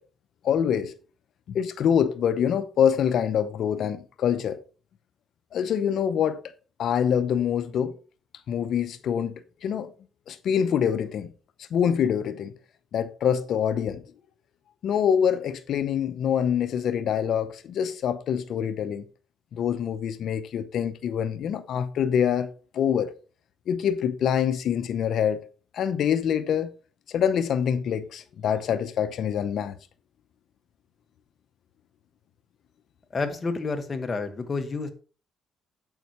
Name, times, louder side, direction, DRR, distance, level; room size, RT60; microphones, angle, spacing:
voice 1, 0.4-0.9 1.5-4.6 5.5-6.4 6.8-7.9 8.5-9.9 10.3-11.3 11.7-12.5 12.9-14.0 14.8-19.0 19.5-22.5 22.7-23.1 23.7-25.4 25.7-26.7 27.1-29.8, left 8 dB, 70° left, 0.7 m, -25 dB
voice 2, 33.1-34.9, left 4 dB, 35° left, 1.7 m, -29 dB
9.1 x 8.1 x 3.1 m
cardioid pair, 90°, 0 cm